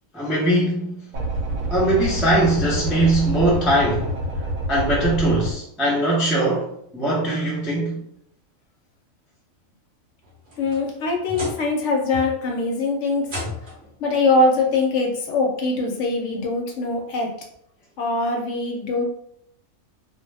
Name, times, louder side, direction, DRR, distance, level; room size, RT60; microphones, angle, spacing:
voice 1, 0.1-1.1 1.7-4.1 4.7-8.1, right 1 dB, ahead, -5 dB, 0.3 m, -21 dB
sound 1, 1.1-5.5, right 1 dB, 80° right, 1.0 m, -27 dB
sound 2, 10.2-11.8 12.1-12.6 13.2-13.9 15.1-15.2 15.8-15.9 17.5-17.6, left 1 dB, 45° right, 0.8 m, -34 dB
voice 2, 10.6-13.3 14.0-17.3 18.0-19.0, left 3 dB, 70° left, 1 dB, 0.8 m, -22 dB
2.3 x 2.1 x 3.3 m, 0.72 s
omnidirectional pair, 1.4 m